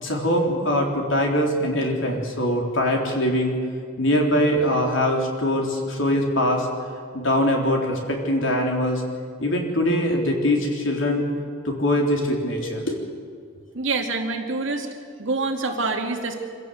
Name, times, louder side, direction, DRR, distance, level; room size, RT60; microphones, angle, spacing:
voice 1, 0.0-3.5 4.0-6.7 7.1-9.0 9.4-11.2 11.6-13.0, equal, 70° left, 1 dB, 3.8 m, -22 dB
voice 2, 13.7-14.9 15.2-16.3, right 3 dB, 70° right, 2 dB, 2.5 m, -26 dB
24.5 x 16.5 x 7.9 m, 2.1 s
head